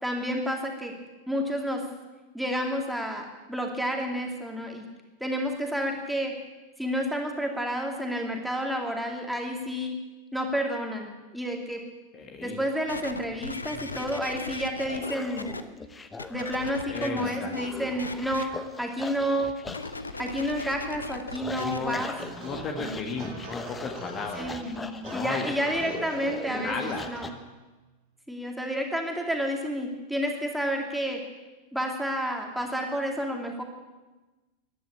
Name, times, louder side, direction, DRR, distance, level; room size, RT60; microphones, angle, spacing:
voice 1, 0.0-0.9 1.3-1.8 2.3-4.8 5.2-6.3 6.8-10.0 10.3-11.8 12.4-15.5 16.3-18.5 18.8-19.5 20.2-22.1 24.4-24.8 25.1-27.2 28.3-31.2 31.7-33.6, equal, ahead, 1 dB, 2.5 m, -30 dB
voice 2, 12.1-12.6 16.9-17.5 21.6-22.0 22.4-24.4 25.1-25.6 26.6-27.0, left 4 dB, 30° left, 3 dB, 1.7 m, -34 dB
sound 1, 12.9-15.6 16.2-17.7 18.0-18.4 19.7-21.9 22.6-22.7, left 3 dB, 80° left, 0.7 m, -37 dB
sound 2, 13.0-27.3, left 4 dB, 15° left, 1.1 m, -41 dB
sound 3, 22.2-27.5, right 2 dB, 50° right, 3.4 m, -41 dB
14.5 x 11.0 x 8.6 m, 1.2 s
figure-of-eight pair, 90°, 0 cm